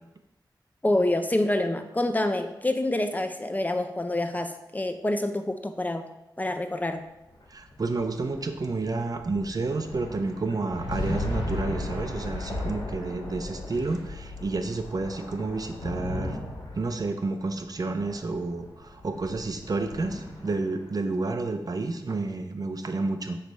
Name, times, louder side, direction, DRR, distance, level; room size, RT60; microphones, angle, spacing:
voice 1, 0.8-6.1 6.4-7.0, left 1 dB, 20° left, 7 dB, 0.6 m, -27 dB
sound 1, 7.3-20.9, left 1 dB, 85° left, 1.8 m, -36 dB
voice 2, 7.5-16.4 16.7-23.4, right 3 dB, 50° right, 6 dB, 0.6 m, -30 dB
7.8 x 3.3 x 5.3 m, 0.95 s
wide cardioid pair, 70°, 8 cm